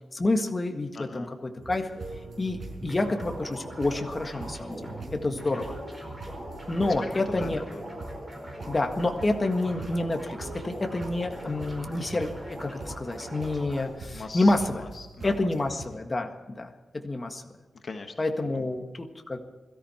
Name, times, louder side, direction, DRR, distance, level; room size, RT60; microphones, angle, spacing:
voice 1, 0.1-1.9 2.4-5.8 6.7-7.6 8.7-14.8 15.2-16.7 16.9-17.4 18.2-18.8 19.3-19.4, left 2 dB, 25° left, 4 dB, 1.7 m, -28 dB
voice 2, 0.9-1.3 5.5-5.6 7.0-8.0 8.4-8.5 14.1-15.3 17.8-18.1, left 4 dB, 50° left, 4 dB, 1.3 m, -41 dB
sound 1, 1.6-15.9, right 3 dB, 55° right, 5.0 m, -43 dB
sound 2, 2.8-13.9, equal, 10° right, 4.9 m, -41 dB
22.0 x 14.0 x 4.4 m, 1.2 s
wide cardioid pair, 135°, 0 cm